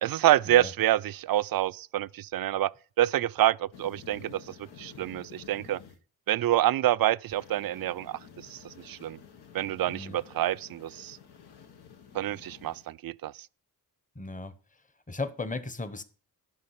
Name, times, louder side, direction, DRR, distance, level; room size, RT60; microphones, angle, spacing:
voice 1, 0.0-2.7 3.0-5.8 6.3-9.2 9.5-11.2 12.1-13.5, right 13 dB, 65° right, 0.5 m, -27 dB
sound 1, 3.7-6.0 7.3-12.9, left 7 dB, 85° left, 1.3 m, -51 dB
voice 2, 9.9-10.2 14.1-14.8 15.1-16.0, left 3 dB, 20° left, 1.0 m, -36 dB
11.0 x 6.0 x 5.8 m
cardioid pair, 75°, 38 cm